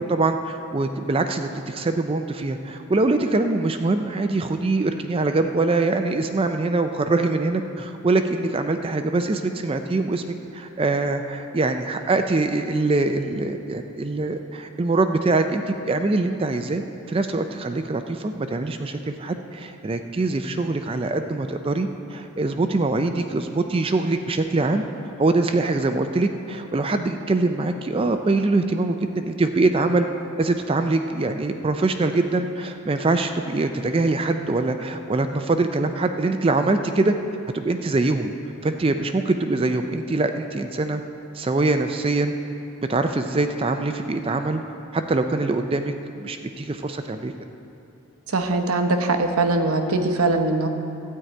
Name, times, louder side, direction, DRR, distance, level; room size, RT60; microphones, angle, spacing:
voice 1, 0.0-16.8 17.1-24.8 25.2-30.1 30.4-37.1 37.5-38.3 38.6-41.0 41.3-42.3 42.9-44.6 44.9-47.3, right 2 dB, 25° right, 7 dB, 0.4 m, -23 dB
voice 2, 48.3-50.7, right 2 dB, 75° right, 6 dB, 0.8 m, -21 dB
13.0 x 4.7 x 8.8 m, 2.7 s
head